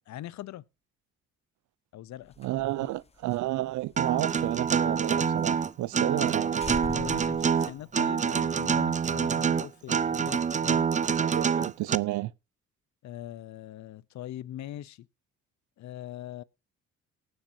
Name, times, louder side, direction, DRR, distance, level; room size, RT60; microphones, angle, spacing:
voice 1, 0.1-0.6 1.9-2.3 2.8-2.9 6.9-10.9 13.0-15.1 15.8-16.4, left 13 dB, 65° left, 0.7 m, -42 dB
sound 1, 2.2-5.1 5.4-5.5 5.8-5.9 6.2-6.3 6.6-8.3, left 5 dB, 20° left, 0.6 m, -43 dB
voice 2, 2.4-6.6 11.2-12.3, right 16 dB, 80° right, 0.6 m, -31 dB
Acoustic guitar, 4.0-11.9, right 7 dB, 25° right, 0.4 m, -26 dB
19.0 x 7.9 x 2.7 m
cardioid pair, 90°, 30 cm